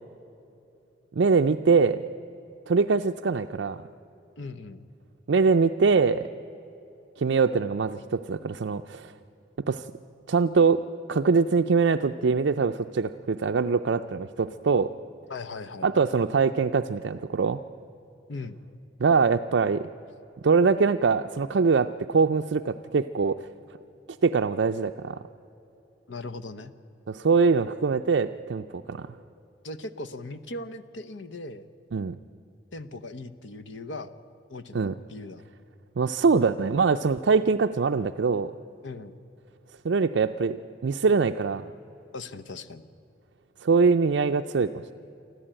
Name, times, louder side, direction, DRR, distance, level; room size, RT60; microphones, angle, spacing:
voice 1, 1.2-2.0 2.7-3.8 5.3-6.3 7.2-9.1 9.7-9.9 10.3-10.8 11.1-14.9 15.8-17.6 19.0-19.9 20.4-23.4 24.2-25.2 27.1-29.1 31.9-32.2 34.7-34.9 36.0-38.5 39.8-40.6 40.8-41.6 43.6-44.7, right 4 dB, 70° right, 6 dB, 0.5 m, -23 dB
voice 2, 4.4-4.8 15.3-15.9 18.3-18.6 26.1-26.7 29.6-31.7 32.7-34.1 34.5-35.4 38.8-39.2 42.1-42.8, left 2 dB, 80° left, 12 dB, 0.9 m, -39 dB
25.0 x 14.5 x 8.9 m, 2.8 s
head